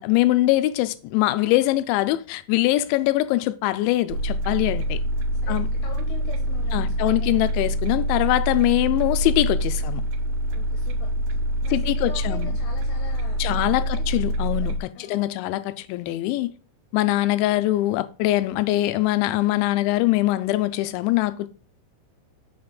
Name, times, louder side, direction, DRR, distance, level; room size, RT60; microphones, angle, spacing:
voice 1, 0.0-5.0 5.5-5.7 6.7-10.0 11.7-12.5 13.4-16.5 16.9-21.5, left 16 dB, 90° left, 3.0 m, -23 dB
sound 1, 4.1-14.8, equal, 80° right, 2.8 m, -25 dB
voice 2, 5.4-7.6 9.8-10.0 10.5-11.1 11.6-14.2 14.5-14.7 14.9-15.6, left 5 dB, 70° left, 3.1 m, -43 dB
6.8 x 5.6 x 5.1 m
omnidirectional pair, 5.3 m